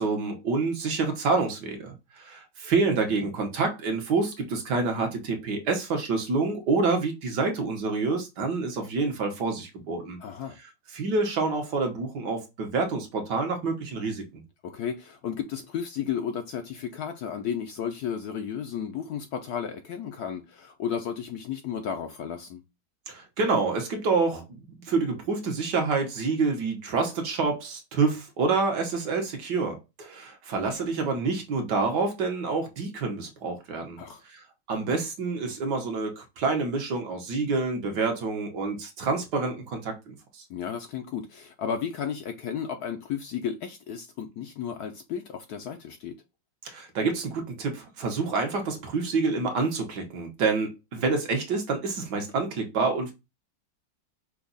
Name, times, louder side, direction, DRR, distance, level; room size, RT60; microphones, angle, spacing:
voice 1, 0.0-10.2 10.9-14.4 23.1-24.4 24.9-34.0 34.3-40.2 46.6-53.1, right 4 dB, 65° right, 1.6 m, -27 dB
voice 2, 10.2-10.6 14.6-22.6 34.0-34.2 40.5-46.2, left 8 dB, 70° left, 1.0 m, -33 dB
5.9 x 2.3 x 3.9 m
omnidirectional pair, 2.1 m